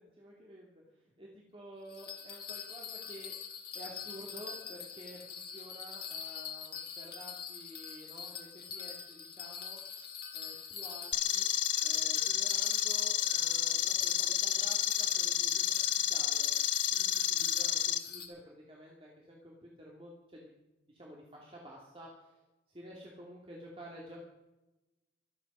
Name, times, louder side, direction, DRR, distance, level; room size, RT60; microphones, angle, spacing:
voice 1, 0.1-3.4 3.7-9.8 10.3-11.5 11.8-16.5 16.9-20.5 20.9-22.4 22.7-24.2, equal, 30° right, -3 dB, 2.4 m, -51 dB
Bell, 1.9-18.3, left 7 dB, 50° left, 2.0 m, -44 dB
sound 1, 11.1-18.0, left 12 dB, 80° left, 1.0 m, -30 dB
23.5 x 8.8 x 5.5 m, 1.0 s
head